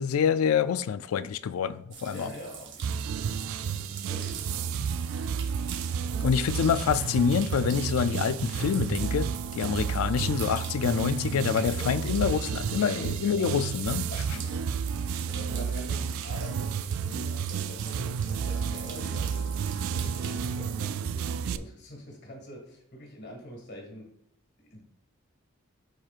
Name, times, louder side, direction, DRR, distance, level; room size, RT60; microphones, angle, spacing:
voice 1, 0.0-2.3 6.2-14.1, left 7 dB, 85° left, 0.3 m, -26 dB
sound 1, 1.9-20.6, right 7 dB, 55° right, 0.9 m, -45 dB
voice 2, 2.1-5.6 6.0-6.4 9.6-9.8 11.7-12.0 12.7-13.5 14.1-24.1 24.6-24.8, equal, 50° left, 1.8 m, -45 dB
sound 2, 2.8-21.6, right 6 dB, 75° right, 0.3 m, -31 dB
12.0 x 4.4 x 2.4 m
head